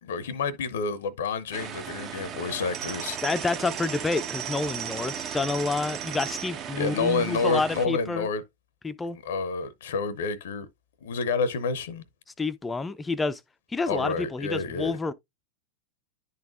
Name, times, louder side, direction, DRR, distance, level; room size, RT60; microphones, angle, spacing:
voice 1, 0.0-3.2 6.7-8.4 9.2-10.7 11.0-12.0 13.9-15.0, left 4 dB, 60° left, 0.7 m, -29 dB
sound 1, 1.5-7.9, right 8 dB, 30° right, 0.7 m, -36 dB
voice 2, 3.2-8.3 8.8-9.2 12.4-13.4 13.7-15.1, left 3 dB, 10° left, 0.5 m, -29 dB
10.5 x 4.1 x 2.5 m
figure-of-eight pair, 90°, 0 cm